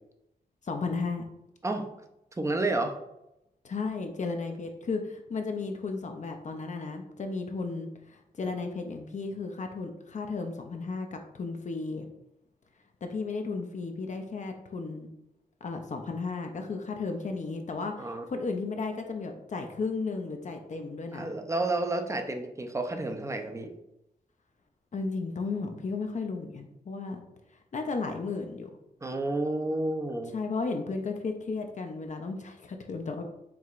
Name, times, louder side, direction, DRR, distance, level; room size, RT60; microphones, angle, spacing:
voice 1, 0.6-1.2 3.6-12.1 13.0-15.1 15.6-21.3 24.9-27.2 27.7-28.7 30.3-33.2, left 4 dB, 50° left, 5 dB, 0.5 m, -34 dB
voice 2, 2.4-3.0 18.0-18.2 21.1-23.7 29.0-30.3, right 2 dB, 20° right, 5 dB, 0.5 m, -30 dB
4.6 x 2.9 x 2.4 m, 0.86 s
wide cardioid pair, 85°, 16 cm